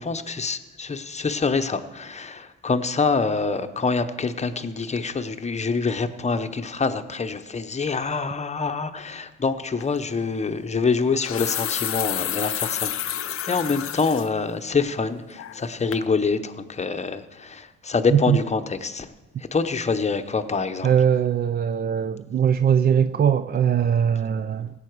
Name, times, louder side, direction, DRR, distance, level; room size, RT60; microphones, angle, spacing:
voice 1, 0.0-19.1 19.4-20.9, left 4 dB, 20° left, 0.8 m, -26 dB
sound 1, 9.8-10.0 11.0-14.3 14.8-14.9 15.4-15.7 15.9-16.1, left 11 dB, 45° left, 0.5 m, -30 dB
voice 2, 20.8-24.7, right 8 dB, 35° right, 0.4 m, -21 dB
17.0 x 8.3 x 4.7 m
cardioid pair, 90°, 30 cm